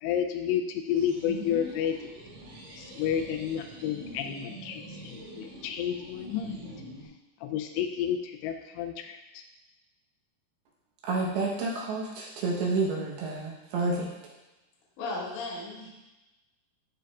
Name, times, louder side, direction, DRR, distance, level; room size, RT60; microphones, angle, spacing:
voice 1, 0.0-2.0 2.7-6.7 7.4-9.4, left 9 dB, 90° left, 5 dB, 2.7 m, -31 dB
sound 1, 0.9-7.1, right 1 dB, 90° right, 3.7 m, -43 dB
voice 2, 11.1-14.1, right 3 dB, 75° right, -3 dB, 2.9 m, -29 dB
voice 3, 15.0-15.9, left 2 dB, 60° left, -4 dB, 2.1 m, -35 dB
12.0 x 4.5 x 2.4 m, 1.0 s
omnidirectional pair, 4.9 m